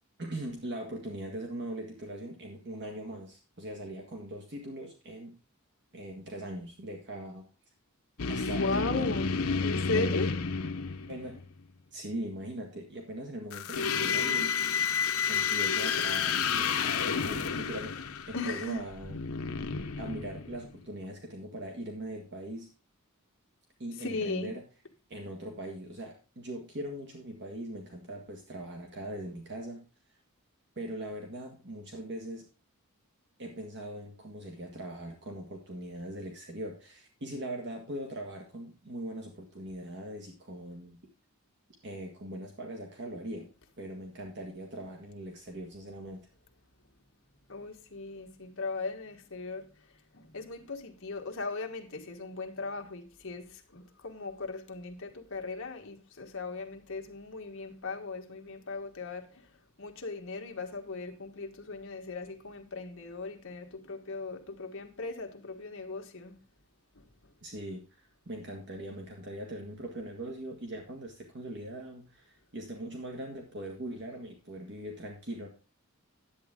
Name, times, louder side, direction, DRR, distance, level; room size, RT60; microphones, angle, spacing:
voice 1, 0.2-5.4 5.9-7.4 8.3-9.2 9.9-10.2 11.1-11.5 11.9-14.6 15.3-19.2 20.0-22.7 23.8-24.6 25.1-29.9 30.8-32.5 33.4-41.0 41.8-43.5 43.8-46.2 67.4-75.5, right 1 dB, 55° right, 1.6 m, -41 dB
sound 1, 8.2-11.5 13.5-20.8, left 6 dB, 80° left, 0.8 m, -30 dB
voice 2, 8.5-10.3 18.3-18.8 24.0-24.5 47.5-49.6 50.1-53.5 53.7-59.3 59.8-66.3, left 3 dB, 65° left, 1.5 m, -37 dB
10.5 x 8.3 x 3.6 m
head